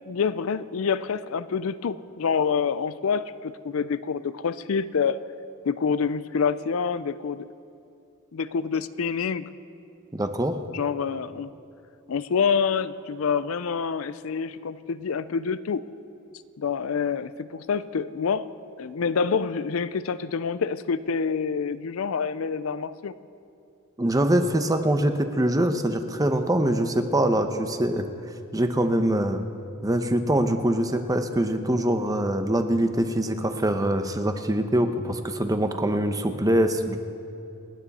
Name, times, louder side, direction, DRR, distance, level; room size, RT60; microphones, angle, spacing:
voice 1, 0.1-5.2 5.6-7.5 8.3-9.5 10.7-11.5 12.1-15.8 16.6-18.5 18.8-23.1, left 6 dB, 80° left, 15 dB, 0.5 m, -27 dB
voice 2, 10.1-10.6 24.0-28.1 28.5-29.4 29.8-37.0, right 1 dB, 15° right, 7 dB, 0.9 m, -23 dB
28.5 x 9.7 x 4.2 m, 2.7 s
head